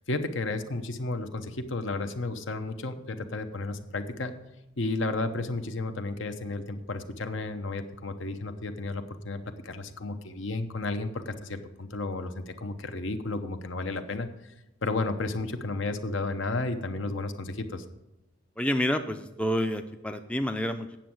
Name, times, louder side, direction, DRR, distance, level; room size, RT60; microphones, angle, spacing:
voice 1, 0.1-4.4 4.8-14.3 14.8-17.8, left 2 dB, 70° left, 8 dB, 0.9 m, -32 dB
voice 2, 18.6-21.0, equal, 5° left, 6 dB, 0.4 m, -29 dB
8.9 x 7.1 x 7.7 m, 0.93 s
head